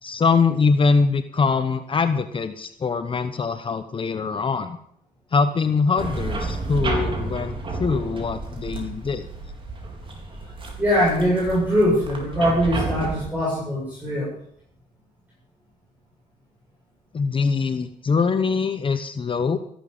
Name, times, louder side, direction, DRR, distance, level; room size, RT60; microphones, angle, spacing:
voice 1, 0.0-4.8 5.3-9.3 17.1-19.6, left 4 dB, 35° left, 10 dB, 0.9 m, -23 dB
sound 1, 6.0-13.3, right 3 dB, 35° right, 4.0 m, -31 dB
voice 2, 10.8-14.3, equal, 10° right, -7 dB, 7.7 m, -22 dB
14.5 x 11.5 x 7.1 m, 0.66 s
cardioid pair, 115°, 16 cm